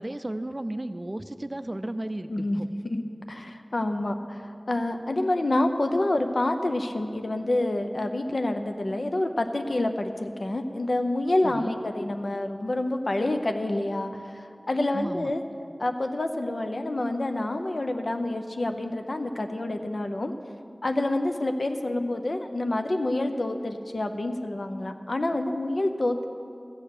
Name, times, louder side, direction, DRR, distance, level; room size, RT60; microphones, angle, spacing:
voice 1, 0.0-2.7 11.4-11.7 14.9-15.3, right 1 dB, 35° right, 11 dB, 0.5 m, -34 dB
voice 2, 2.3-3.0 3.3-15.4 15.8-20.3 20.8-26.2, left 1 dB, 75° left, 6 dB, 0.7 m, -28 dB
13.5 x 8.0 x 6.6 m, 2.5 s
wide cardioid pair, 45°, 0 cm